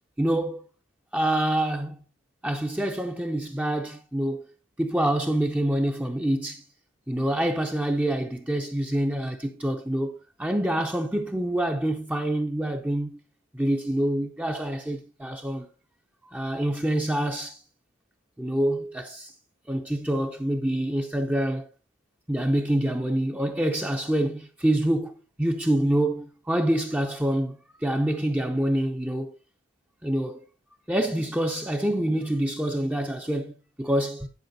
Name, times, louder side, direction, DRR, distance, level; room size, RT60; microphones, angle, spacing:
voice 1, 0.2-0.6 1.1-2.0 2.4-4.4 4.8-6.6 7.1-13.2 13.5-15.7 16.3-17.6 18.4-19.3 19.7-21.7 22.3-29.3 30.0-30.4 30.9-34.3, right 1 dB, 10° right, 0.7 m, -26 dB
11.0 x 5.6 x 4.2 m
head